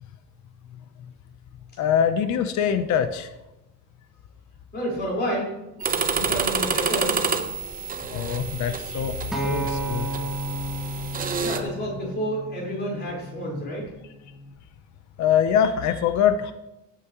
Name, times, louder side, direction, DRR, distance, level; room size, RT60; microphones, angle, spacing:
voice 1, 1.8-3.3 8.1-10.1 15.2-16.5, left 8 dB, 70° left, 9 dB, 0.8 m, -23 dB
voice 2, 4.7-5.5 6.1-7.3 11.4-13.9, equal, 35° left, -4 dB, 4.6 m, -29 dB
sound 1, 5.8-11.6, right 5 dB, 30° right, 0.9 m, -28 dB
Acoustic guitar, 9.3-13.6 14.4-14.5, equal, ahead, 2.1 m, -32 dB
17.5 x 8.7 x 3.1 m, 0.95 s
cardioid pair, 165°, 30 cm